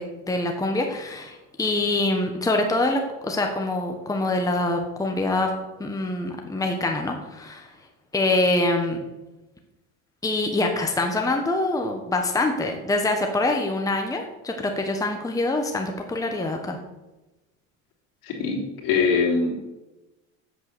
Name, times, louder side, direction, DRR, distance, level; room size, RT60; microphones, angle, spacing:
voice 1, 0.0-5.5 5.8-7.7 8.1-9.0 10.2-16.8, left 2 dB, 10° left, 3 dB, 1.2 m, -25 dB
voice 2, 18.2-19.6, left 5 dB, 60° left, 2 dB, 3.3 m, -23 dB
8.1 x 7.9 x 6.8 m, 1.0 s
supercardioid pair, 115°, 39 cm